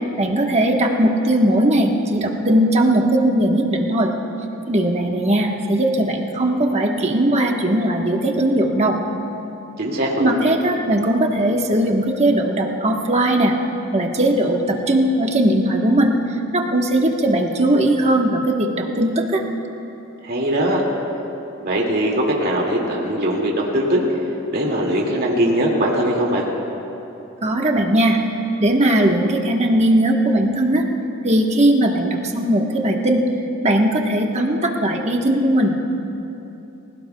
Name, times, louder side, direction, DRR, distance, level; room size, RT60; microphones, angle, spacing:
voice 1, 0.2-4.1 4.7-9.0 10.2-13.6 13.9-16.1 16.5-19.4 27.4-28.2 28.6-30.9 31.2-33.2 33.6-35.8, right 1 dB, 30° right, 1 dB, 1.2 m, -18 dB
voice 2, 9.8-10.3 20.2-20.8 21.6-24.0 24.5-26.4, right 1 dB, 50° right, -2 dB, 2.2 m, -20 dB
29.5 x 17.0 x 2.3 m, 3.0 s
head